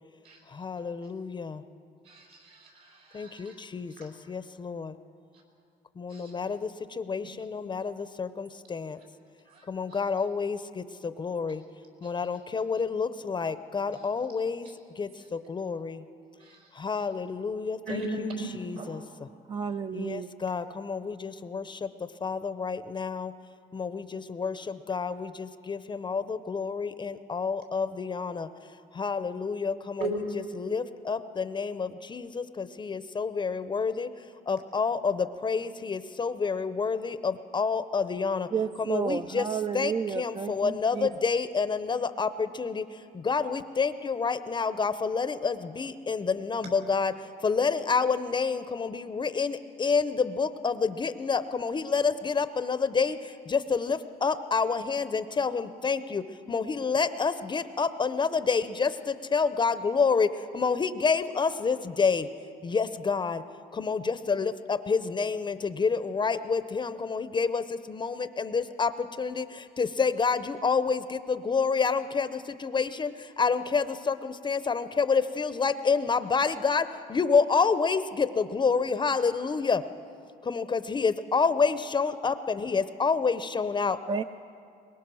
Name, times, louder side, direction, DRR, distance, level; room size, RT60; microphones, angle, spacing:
voice 1, 0.5-1.6 3.1-4.9 6.0-9.0 9.7-11.6 12.0-14.7 15.0-16.0 16.7-18.0 18.5-19.0 19.9-23.3 23.7-28.5 28.9-30.1 30.5-34.1 34.5-38.5 38.8-39.5 39.7-62.3 62.6-63.4 63.7-79.9 80.4-84.0, left 5 dB, 25° left, 0.7 m, -28 dB
voice 2, 2.0-3.5 4.0-4.1 6.1-6.4 9.5-10.0 13.9-14.0 14.6-14.7 16.4-16.7 17.9-18.2 18.8-18.9 30.0-30.2, right 2 dB, 65° right, 6.1 m, -37 dB
voice 3, 19.5-20.3 38.5-41.1 84.1-84.2, right 6 dB, 30° right, 0.5 m, -31 dB
23.5 x 21.0 x 6.2 m
cardioid pair, 110°, 17 cm